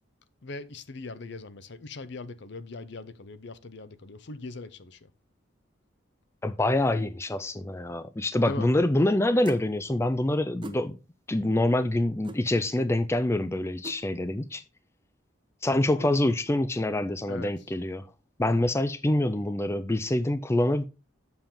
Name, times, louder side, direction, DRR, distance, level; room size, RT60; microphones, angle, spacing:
voice 1, 0.4-5.1 8.5-8.7 15.9-16.1 17.3-17.5, left 3 dB, 60° left, 0.7 m, -40 dB
voice 2, 6.4-11.0 11.3-14.6 15.6-18.1 18.4-20.8, left 1 dB, 15° left, 0.4 m, -26 dB
sound 1, 9.5-9.7 10.6-10.8 12.2-12.4 13.8-14.0, right 1 dB, 25° right, 0.7 m, -40 dB
7.4 x 6.9 x 3.7 m
head